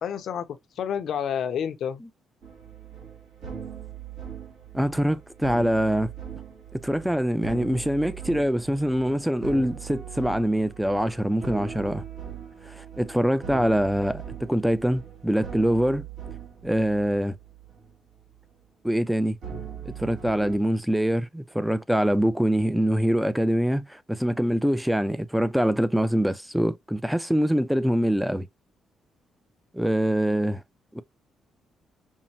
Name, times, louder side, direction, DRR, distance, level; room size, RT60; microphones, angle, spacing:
voice 1, 0.0-2.0, left 8 dB, 70° left, 0.7 m, -29 dB
sound 1, 2.4-18.0 18.2-18.6 19.4-20.6, right 7 dB, 80° right, 1.9 m, -40 dB
voice 2, 4.7-6.1 6.7-12.0 12.7-16.1 16.6-17.4 18.8-19.4 19.8-28.5 29.7-30.6 30.9-31.0, equal, 5° right, 0.5 m, -24 dB
5.4 x 2.2 x 2.9 m
cardioid pair, 90°, 0 cm